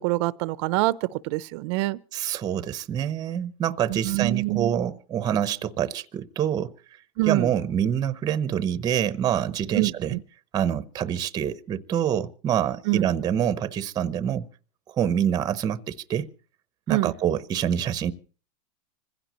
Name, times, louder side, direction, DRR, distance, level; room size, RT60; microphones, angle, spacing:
voice 1, 0.0-2.0 3.9-4.7 7.2-7.5 9.7-10.2 12.9-13.1 16.9-17.1, right 20 dB, 50° right, 0.7 m, -25 dB
voice 2, 2.1-6.7 7.2-10.2 10.5-14.5 14.9-16.3 16.9-18.1, right 9 dB, 20° right, 0.8 m, -26 dB
26.0 x 16.0 x 3.0 m
supercardioid pair, 145°, 19 cm